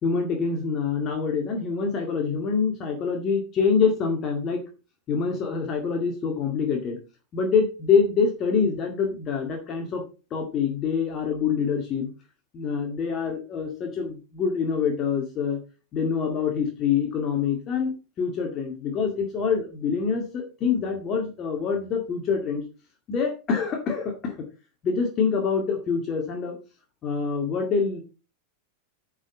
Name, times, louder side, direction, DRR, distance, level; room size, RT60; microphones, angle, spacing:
voice 1, 0.0-4.6 5.1-7.0 7.3-10.0 10.3-12.1 12.5-15.6 15.9-22.6 23.1-24.4 24.8-26.6 27.0-28.0, left 5 dB, 30° left, 2 dB, 2.1 m, -25 dB
9.9 x 4.9 x 5.3 m, 0.32 s
figure-of-eight pair, 90°, 0 cm